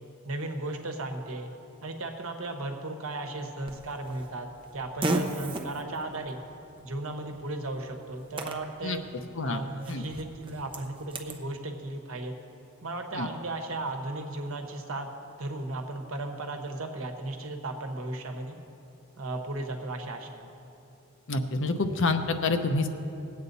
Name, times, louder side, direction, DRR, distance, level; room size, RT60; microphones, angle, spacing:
voice 1, 0.2-1.5 1.8-6.4 6.8-9.0 9.4-12.3 12.8-15.1 15.4-18.6 19.2-20.5, right 2 dB, 65° right, 4 dB, 1.2 m, -35 dB
Fart, 3.7-11.4, right 2 dB, 25° right, 0.8 m, -37 dB
voice 2, 21.3-22.9, left 3 dB, 60° left, 7 dB, 0.8 m, -27 dB
19.5 x 8.5 x 4.1 m, 2.8 s
head